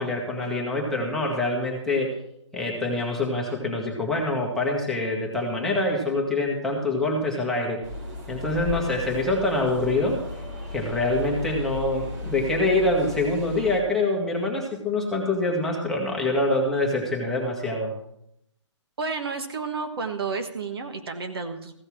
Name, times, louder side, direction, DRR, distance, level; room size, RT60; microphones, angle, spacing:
voice 1, 0.0-2.1 2.5-7.8 8.3-10.2 10.7-17.9, left 2 dB, 5° left, -2 dB, 1.6 m, -25 dB
sound 1, 7.8-13.8, left 2 dB, 35° right, 2.7 m, -35 dB
voice 2, 19.0-21.7, right 4 dB, 50° right, 6 dB, 1.4 m, -31 dB
15.0 x 6.5 x 6.2 m, 0.75 s
figure-of-eight pair, 145°, 16 cm